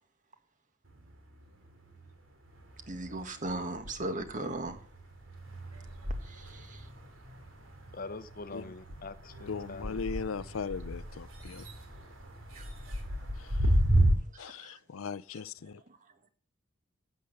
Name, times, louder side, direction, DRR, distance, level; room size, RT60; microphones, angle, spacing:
sound 1, 0.9-2.1 2.4-14.1, right 1 dB, 75° right, 3.0 m, -33 dB
voice 1, 2.9-4.8 6.3-6.8 12.5-12.6 14.3-14.7, right 2 dB, 40° right, 1.7 m, -37 dB
voice 2, 7.9-10.0, left 3 dB, 45° left, 0.7 m, -44 dB
voice 3, 9.5-11.7 13.4-13.5 14.4-15.8, left 5 dB, 85° left, 0.5 m, -38 dB
12.0 x 8.2 x 6.7 m
head